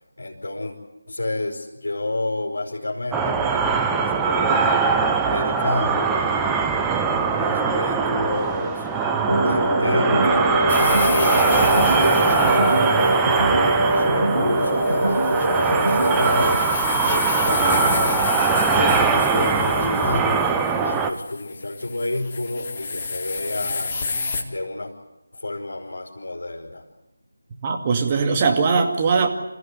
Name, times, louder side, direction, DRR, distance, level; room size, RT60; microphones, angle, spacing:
voice 1, 0.2-0.8 1.1-4.8 5.2-6.7 7.3-8.9 9.4-12.7 13.8-16.6 17.1-20.5 20.8-23.9 24.5-24.9 25.3-26.8, left 2 dB, 65° left, -3 dB, 4.4 m, -30 dB
sound 1, 3.1-21.1, right 5 dB, 10° right, 1.0 m, -22 dB
sound 2, 9.3-16.6, right 1 dB, 75° right, 3.9 m, -22 dB
sound 3, 10.7-24.4, left 4 dB, 35° left, 2.2 m, -30 dB
voice 2, 27.6-29.3, right 5 dB, 25° right, 3 dB, 2.3 m, -20 dB
27.0 x 15.5 x 9.6 m, 0.98 s
figure-of-eight pair, 160°, 0 cm